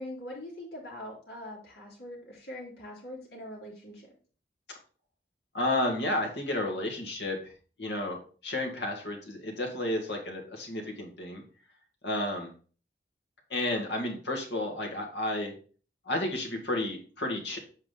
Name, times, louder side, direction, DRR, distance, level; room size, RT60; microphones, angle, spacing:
voice 1, 0.0-4.1, left 1 dB, 70° left, -4 dB, 3.0 m, -42 dB
voice 2, 5.5-7.5 7.8-11.4 12.0-12.5 13.5-15.5 16.1-17.6, left 1 dB, 85° left, 2 dB, 1.8 m, -32 dB
7.4 x 4.9 x 3.8 m, 0.40 s
head